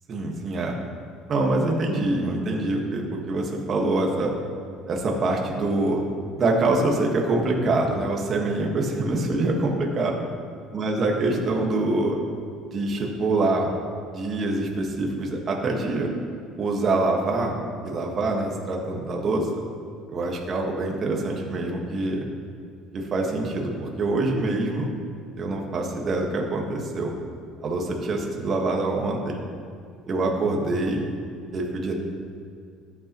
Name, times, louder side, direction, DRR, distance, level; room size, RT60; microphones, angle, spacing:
voice 1, 0.1-0.8 1.3-4.3 4.9-6.0 6.4-10.2 10.7-12.2 12.7-13.7 14.1-16.1 16.6-17.5 17.8-19.6 20.1-22.2 22.9-24.9 25.4-27.1 27.6-29.4 30.1-31.1 31.5-31.9, right 2 dB, 30° right, 0 dB, 1.5 m, -25 dB
18.5 x 8.6 x 3.0 m, 2.2 s
cardioid pair, 175°, 0 cm